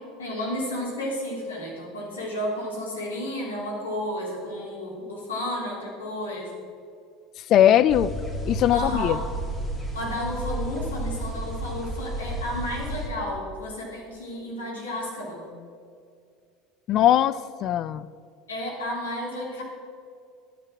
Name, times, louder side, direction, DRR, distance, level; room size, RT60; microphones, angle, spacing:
voice 1, 0.0-6.5 8.7-9.2 9.9-15.5 18.5-19.6, left 1 dB, 85° left, -3 dB, 3.2 m, -32 dB
voice 2, 7.5-8.1 8.5-9.2 16.9-18.1, left 11 dB, 50° left, 15 dB, 0.4 m, -20 dB
sound 1, 7.9-13.1, right 1 dB, 15° left, 2.2 m, -32 dB
12.5 x 9.1 x 6.2 m, 2.3 s
figure-of-eight pair, 70°, 0 cm